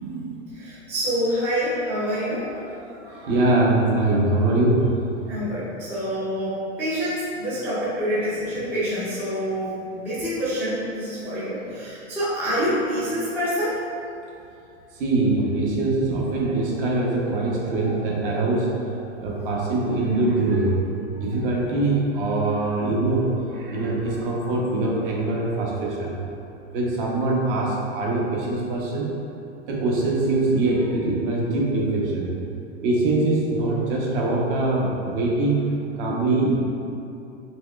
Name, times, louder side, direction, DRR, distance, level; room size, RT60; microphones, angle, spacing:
voice 1, 0.0-0.4 2.5-5.1 15.0-18.7 19.2-20.7 21.1-26.3 26.7-29.1 29.7-32.3 32.8-35.6 36.0-36.5, right 2 dB, 45° right, -3 dB, 0.8 m, -23 dB
voice 2, 0.5-2.5 5.3-13.8, equal, 5° right, -11 dB, 0.4 m, -26 dB
4.4 x 3.0 x 2.3 m, 2.6 s
hypercardioid pair, 130°, 37 cm